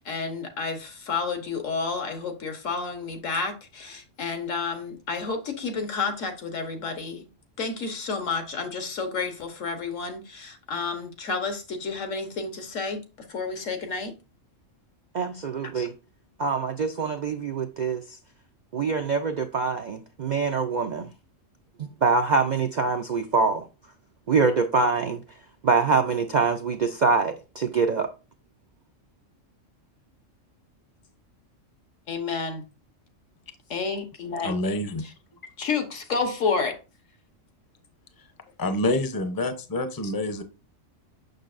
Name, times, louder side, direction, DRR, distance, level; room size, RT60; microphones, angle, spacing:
voice 1, 0.0-7.3 7.6-13.0 13.3-14.1 15.7-15.9 32.1-32.6 33.7-34.5 35.6-36.8, left 4 dB, 75° left, 1.5 m, -30 dB
voice 2, 15.1-15.9 16.4-18.0 18.7-21.1 21.8-23.7 24.3-25.2 25.6-28.1, right 4 dB, 55° right, 0.5 m, -24 dB
voice 3, 34.4-35.0 38.6-40.4, left 1 dB, 20° left, 0.6 m, -27 dB
6.5 x 6.2 x 2.5 m
omnidirectional pair, 1.3 m